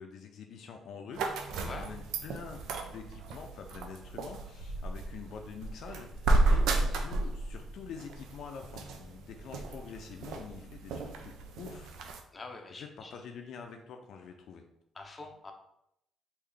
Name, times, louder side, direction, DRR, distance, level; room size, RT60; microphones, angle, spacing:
voice 1, 0.0-12.0 12.7-14.7, left 6 dB, 70° left, 4 dB, 0.4 m, -46 dB
sound 1, 1.1-12.2, right 2 dB, 85° right, 0.4 m, -33 dB
voice 2, 12.3-13.1 15.0-15.5, left 3 dB, 30° left, 3 dB, 0.6 m, -45 dB
3.6 x 2.5 x 3.3 m, 0.79 s
cardioid pair, 85°, 0 cm